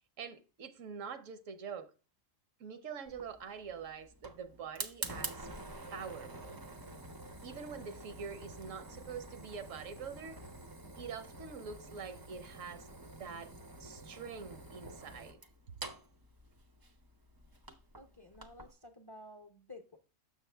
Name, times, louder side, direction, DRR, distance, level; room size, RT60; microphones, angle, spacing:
voice 1, 0.2-1.9 2.6-5.5 5.9-6.6 7.4-10.4 10.9-13.5 13.8-15.4, right 6 dB, 75° right, 1.1 m, -45 dB
Fire, 3.1-18.7, right 2 dB, 30° right, 0.4 m, -48 dB
voice 2, 18.0-20.0, left 2 dB, 25° left, 0.5 m, -53 dB
6.7 x 6.3 x 3.3 m
omnidirectional pair, 1.4 m